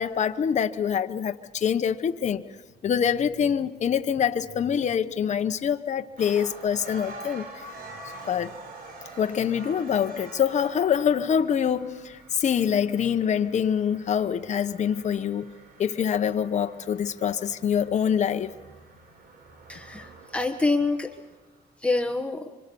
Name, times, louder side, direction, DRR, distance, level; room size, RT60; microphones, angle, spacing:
voice 1, 0.0-2.4 2.8-7.5 8.3-8.6 9.2-15.5 15.8-18.5, left 8 dB, 45° left, 1.0 m, -25 dB
sound 1, 6.2-21.5, right 2 dB, 60° right, 4.9 m, -46 dB
voice 2, 19.7-21.2 21.8-22.5, left 3 dB, 5° left, 1.3 m, -26 dB
25.5 x 25.5 x 7.0 m
cardioid pair, 135°, 17 cm